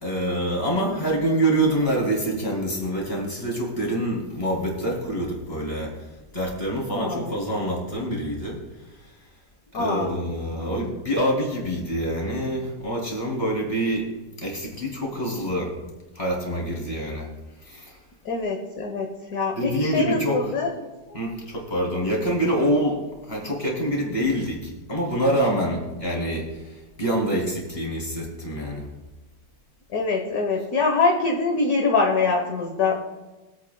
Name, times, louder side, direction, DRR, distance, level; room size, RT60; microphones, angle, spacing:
voice 1, 0.0-5.9 6.3-8.6 9.0-9.1 9.7-14.1 14.4-15.7 16.1-17.3 17.6-18.0 19.5-20.4 21.1-23.0 23.3-28.9, right 1 dB, 20° left, -3 dB, 3.3 m, -26 dB
voice 2, 6.9-7.3 9.7-10.1 18.2-20.7 21.1-21.2 29.9-32.9, left 3 dB, 55° left, 1 dB, 1.5 m, -24 dB
23.5 x 8.4 x 2.3 m, 1.1 s
omnidirectional pair, 2.1 m